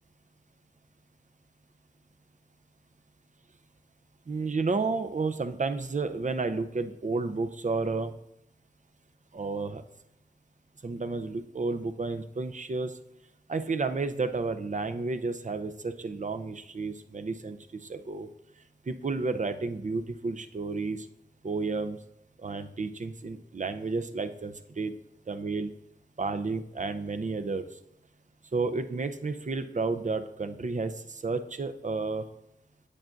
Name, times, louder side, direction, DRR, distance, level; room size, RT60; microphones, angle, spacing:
voice 1, 4.3-8.1 9.3-9.8 10.8-13.0 13.5-18.3 18.9-21.1 21.4-22.0 22.4-24.9 25.3-25.7 26.2-27.7 28.5-32.2, right 3 dB, 45° right, 9 dB, 0.6 m, -31 dB
8.9 x 8.5 x 2.6 m, 0.82 s
wide cardioid pair, 60°, 18 cm